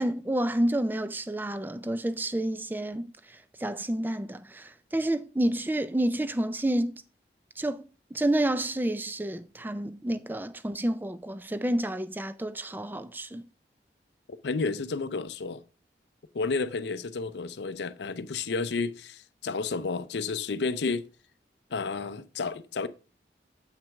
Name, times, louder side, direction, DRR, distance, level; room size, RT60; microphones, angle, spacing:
voice 1, 0.0-6.9 7.6-13.4, right 1 dB, 10° right, 0.3 m, -29 dB
voice 2, 14.3-15.6 16.3-21.1 21.7-22.9, left 4 dB, 80° left, 0.5 m, -31 dB
7.4 x 5.9 x 3.4 m
head